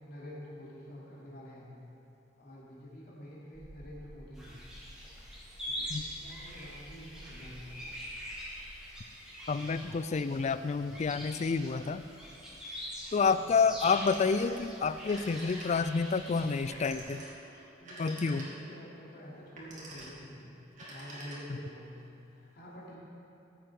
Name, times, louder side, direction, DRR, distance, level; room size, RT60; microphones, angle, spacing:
voice 1, 0.1-1.8 2.4-4.6 5.6-7.9 13.3-13.6 17.8-20.5 20.8-23.0, equal, 55° left, -6 dB, 2.9 m, -48 dB
sound 1, 3.5-8.9, equal, 20° right, 1.1 m, -53 dB
sound 2, 4.3-17.0, equal, 5° right, 2.2 m, -44 dB
voice 2, 9.5-12.0 13.1-17.2 18.0-18.4 21.5-21.6, left 5 dB, 35° left, 13 dB, 0.3 m, -29 dB
Telephone, 13.8-14.7 15.0-16.0 16.7-18.8 19.4-20.3 20.7-21.7, right 1 dB, 40° right, 2.3 m, -47 dB
14.5 x 7.6 x 4.8 m, 2.7 s
head